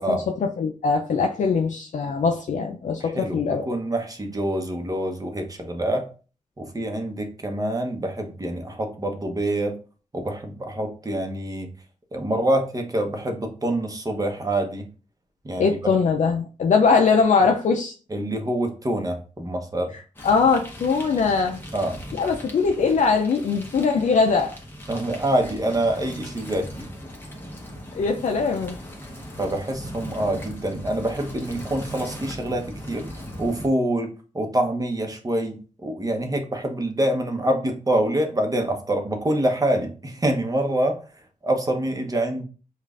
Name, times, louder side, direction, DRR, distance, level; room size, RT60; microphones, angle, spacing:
voice 1, 0.0-3.6 15.6-17.9 20.2-21.6 22.2-24.6 27.9-28.8, left 5 dB, 70° left, 0.4 m, -21 dB
voice 2, 3.0-6.1 6.6-9.8 10.1-11.7 12.1-14.9 15.4-15.9 18.1-19.9 21.7-22.0 24.9-26.9 29.4-42.4, right 1 dB, 25° right, 0.9 m, -26 dB
sound 1, 20.2-33.7, equal, 15° left, 1.0 m, -39 dB
5.1 x 2.4 x 2.4 m
cardioid pair, 70°, 13 cm